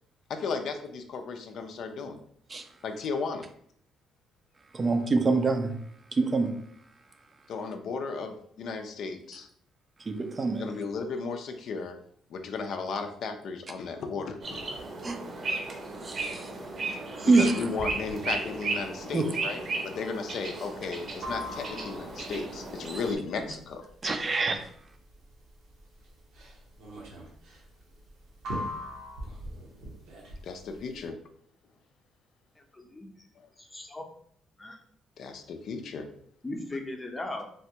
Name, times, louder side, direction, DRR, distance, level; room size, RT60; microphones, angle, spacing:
voice 1, 0.3-2.2 2.8-3.5 7.5-9.5 10.6-12.0 12.3-14.4 17.4-23.9 30.4-31.2 33.4-33.5 35.2-36.1, left 4 dB, 65° left, 6 dB, 0.4 m, -35 dB
voice 2, 4.7-5.7 6.2-6.5 10.1-10.6 15.0-15.2 16.0-16.5 17.2-17.5 19.1-19.3 24.0-24.6, right 3 dB, 35° right, 6 dB, 0.4 m, -25 dB
sound 1, 14.4-23.1, right 3 dB, 55° right, 0.8 m, -35 dB
sound 2, 21.2-31.1, equal, 85° right, 0.9 m, -40 dB
voice 3, 32.6-33.1 33.6-34.0 34.6-34.8 36.4-37.5, left 2 dB, 20° left, 2 dB, 0.6 m, -38 dB
3.3 x 2.2 x 2.8 m, 0.64 s
cardioid pair, 80°, 0 cm